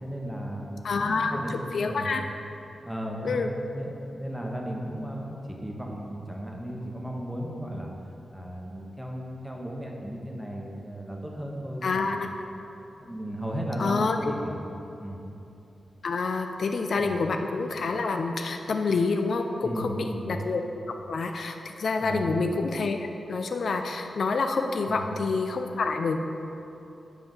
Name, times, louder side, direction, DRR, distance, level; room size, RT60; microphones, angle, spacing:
voice 1, 0.0-2.1 2.8-3.4 3.7-7.9 8.3-12.2 13.0-14.6 15.0-15.2 17.0-17.2 19.6-20.4 22.0-22.4 24.9-25.1, equal, ahead, -1 dB, 1.0 m, -35 dB
voice 2, 0.8-2.2 3.2-3.5 11.8-12.3 13.8-14.3 16.0-20.6 21.1-23.0 23.3-26.2, left 4 dB, 65° left, 5 dB, 0.4 m, -27 dB
7.8 x 4.6 x 5.4 m, 2.9 s
wide cardioid pair, 105°, 0 cm